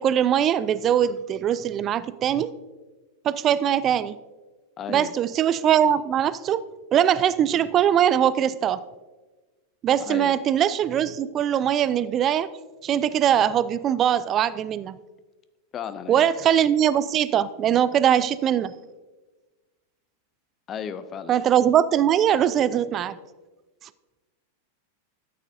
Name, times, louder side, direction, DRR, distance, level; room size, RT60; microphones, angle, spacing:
voice 1, 0.0-2.5 3.2-4.2 4.9-6.6 6.9-8.8 9.8-12.5 12.8-15.0 16.1-18.7 21.3-23.2, right 9 dB, 30° right, 17 dB, 0.3 m, -21 dB
voice 2, 4.8-5.1 10.0-10.3 15.7-16.3 20.7-21.3, left 8 dB, 25° left, 12 dB, 0.6 m, -34 dB
13.0 x 8.3 x 2.6 m, 1.2 s
figure-of-eight pair, 90°, 0 cm